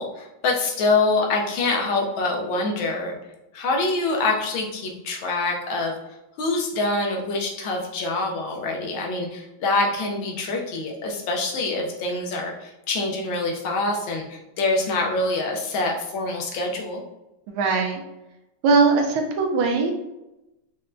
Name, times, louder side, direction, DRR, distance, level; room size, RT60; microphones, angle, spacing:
voice 1, 0.0-3.2 3.5-5.9 6.4-17.0, left 3 dB, 75° left, 0 dB, 1.3 m, -25 dB
voice 2, 17.5-18.0 18.6-19.9, right 4 dB, 90° right, 3 dB, 1.5 m, -20 dB
5.4 x 2.1 x 2.5 m, 0.94 s
omnidirectional pair, 2.3 m